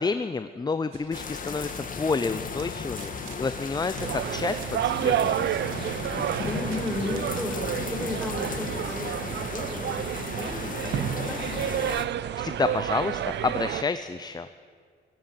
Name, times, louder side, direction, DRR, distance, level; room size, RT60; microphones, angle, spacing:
voice 1, 0.0-5.6 12.2-14.5, left 4 dB, 20° left, 11 dB, 0.7 m, -30 dB
sound 1, 0.9-12.3, right 8 dB, 90° right, 1.9 m, -43 dB
sound 2, 1.1-12.1, left 5 dB, 45° left, 1.9 m, -36 dB
sound 3, 4.0-13.8, right 10 dB, 60° right, 0.6 m, -30 dB
voice 2, 6.5-11.7, left 1 dB, 5° left, 0 dB, 4.9 m, -34 dB
16.5 x 16.5 x 9.6 m, 2.1 s
cardioid pair, 90°, 20 cm